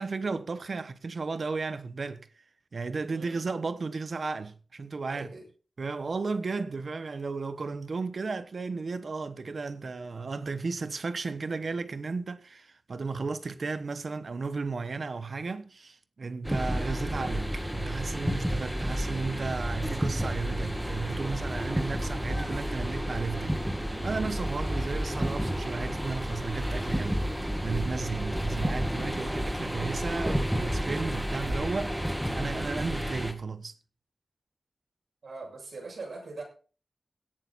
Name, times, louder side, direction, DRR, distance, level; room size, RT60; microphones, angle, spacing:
voice 1, 0.0-2.3 2.7-5.3 5.8-23.6 24.0-27.3 27.6-33.8, right 4 dB, 60° right, 1.0 m, -34 dB
voice 2, 3.1-3.4 5.1-5.4 18.5-18.7 35.2-36.4, right 3 dB, 85° right, 6.7 m, -42 dB
sound 1, 16.4-33.3, equal, 5° right, 1.9 m, -31 dB
17.5 x 9.1 x 4.1 m
wide cardioid pair, 115°, 0 cm